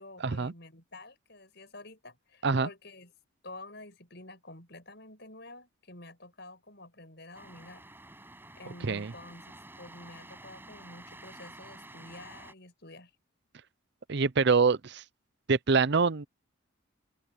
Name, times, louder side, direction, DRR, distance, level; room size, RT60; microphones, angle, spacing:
voice 1, 0.0-3.1 3.4-7.9 8.1-13.1, left 2 dB, 55° left, 7.4 m, -49 dB
sound 1, 7.3-12.5, right 2 dB, 10° right, 6.8 m, -50 dB
voice 2, 14.1-15.0 15.5-16.3, right 4 dB, 55° right, 0.6 m, -25 dB
open air
head